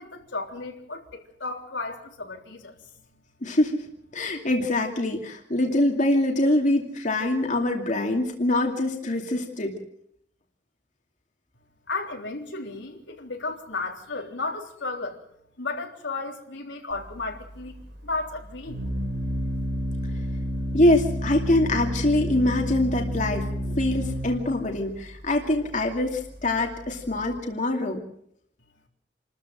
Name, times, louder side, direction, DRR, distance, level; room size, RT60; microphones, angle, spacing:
voice 1, 0.0-2.9 11.9-15.2 15.6-17.8 18.0-18.9, left 3 dB, 90° left, 2 dB, 3.6 m, -34 dB
voice 2, 3.4-3.8 4.1-9.7 20.7-28.0, left 1 dB, 45° left, 2 dB, 2.5 m, -24 dB
Organ, 16.9-27.4, equal, 65° right, 3.7 m, -31 dB
28.0 x 13.5 x 7.7 m, 0.72 s
head